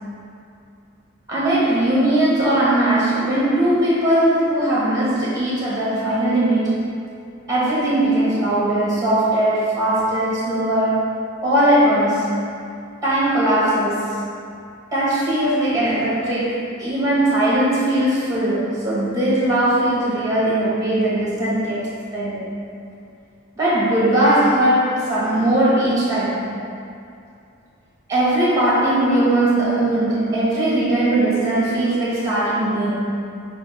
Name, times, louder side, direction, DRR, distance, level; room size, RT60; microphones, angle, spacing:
voice 1, 1.3-6.8 7.5-11.1 11.4-12.4 13.0-14.2 14.9-22.5 23.6-26.5 28.1-33.2, right 1 dB, 15° right, -8 dB, 1.3 m, -19 dB
4.5 x 3.4 x 3.4 m, 2.5 s
head